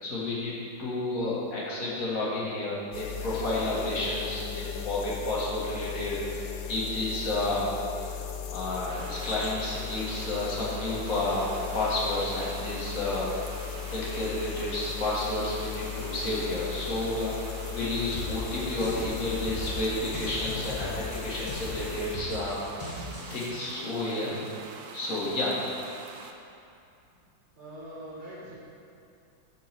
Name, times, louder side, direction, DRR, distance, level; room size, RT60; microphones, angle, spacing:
voice 1, 0.0-0.5 0.8-7.7 8.1-8.2 8.5-13.3 13.9-17.3 17.7-23.0 23.3-24.3 24.9-25.5, left 2 dB, 45° left, -6 dB, 2.0 m, -31 dB
sound 1, 2.9-22.2, left 8 dB, 70° left, 1.1 m, -37 dB
sound 2, 8.9-26.3, right 4 dB, 90° right, 1.5 m, -45 dB
sound 3, 18.1-23.5, left 1 dB, 20° left, 1.4 m, -39 dB
voice 2, 27.5-28.5, right 1 dB, 25° right, -10 dB, 2.3 m, -42 dB
11.5 x 4.7 x 4.5 m, 2.6 s
omnidirectional pair, 2.1 m